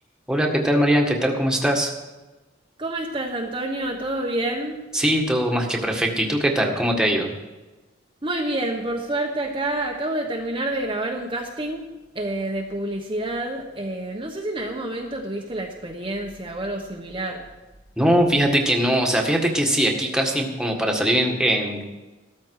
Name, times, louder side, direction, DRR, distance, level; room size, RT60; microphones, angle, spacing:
voice 1, 0.3-1.9 4.9-7.3 18.0-21.9, equal, 5° right, 1 dB, 1.8 m, -21 dB
voice 2, 2.8-4.8 8.2-11.9 12.1-17.5, right 1 dB, 25° right, 0 dB, 1.2 m, -28 dB
14.5 x 13.0 x 4.8 m, 1.1 s
head